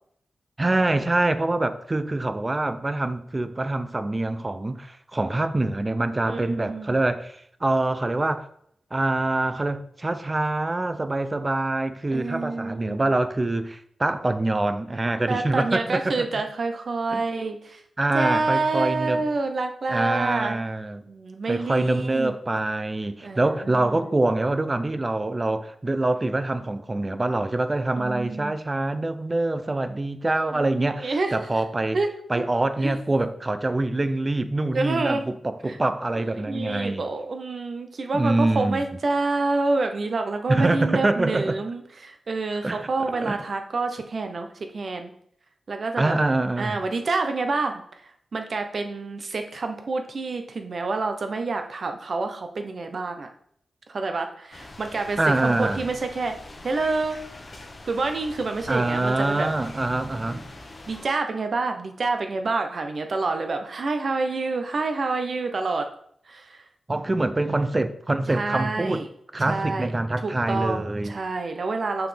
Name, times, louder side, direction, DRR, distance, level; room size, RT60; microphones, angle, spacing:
voice 1, 0.6-8.5 8.9-16.2 17.1-17.2 18.0-19.2 19.9-21.0 21.5-32.0 32.3-37.1 38.1-38.8 40.5-41.6 42.6-42.9 43.2-43.4 46.0-46.8 55.2-55.8 58.7-60.5 66.9-69.0 69.3-71.1, right 2 dB, 20° right, 0.5 m, -25 dB
voice 2, 6.3-7.1 12.1-13.1 15.3-17.8 18.1-20.6 21.0-22.3 23.2-24.2 28.0-28.6 30.5-31.4 31.9-32.4 32.8-33.0 34.7-35.2 35.7-35.8 36.2-45.1 45.7-46.1 46.6-53.3 53.9-56.4 56.6-57.2 57.8-59.5 60.9-65.9 66.3-66.6 68.3-69.1 69.5-69.9 70.2-72.1, right 3 dB, 50° right, 0.8 m, -28 dB
sound 1, 54.5-61.1, left 2 dB, 35° left, 1.0 m, -44 dB
7.0 x 5.8 x 3.4 m
wide cardioid pair, 130°, 0 cm